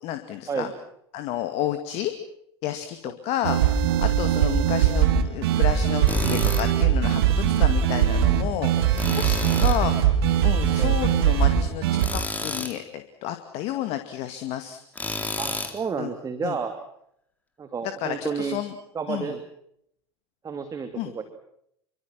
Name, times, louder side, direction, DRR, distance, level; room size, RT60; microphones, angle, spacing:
voice 1, 0.0-0.7 1.1-2.1 2.6-11.8 12.1-14.8 16.0-16.1 16.4-16.6 17.8-18.7 19.1-19.4 21.0-21.1, left 12 dB, 50° left, 8 dB, 2.2 m, -31 dB
sound 1, 3.4-12.1, right 10 dB, 65° right, 3.6 m, -21 dB
Tools, 6.1-6.7 9.0-9.8 12.0-12.8 14.9-15.8, left 2 dB, 10° left, 4.1 m, -30 dB
voice 2, 15.4-16.8 17.6-18.6 18.9-19.4 20.4-21.2, right 6 dB, 25° right, 8 dB, 2.7 m, -31 dB
28.0 x 25.0 x 6.0 m, 0.72 s
figure-of-eight pair, 75°, 14 cm